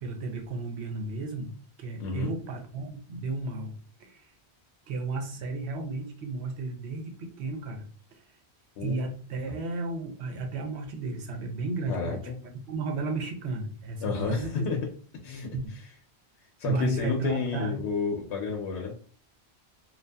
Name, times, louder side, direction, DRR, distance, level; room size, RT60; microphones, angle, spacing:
voice 1, 0.0-4.3 4.9-8.2 8.8-12.3 12.7-14.7 15.5-15.8 16.6-17.8, right 3 dB, 80° right, 5 dB, 0.9 m, -33 dB
voice 2, 2.0-2.3 8.8-9.0 9.5-9.6 11.9-12.4 14.0-14.8 15.2-15.5 16.6-19.0, left 5 dB, 80° left, 0 dB, 0.9 m, -31 dB
2.6 x 2.3 x 2.2 m, 0.42 s
omnidirectional pair, 1.1 m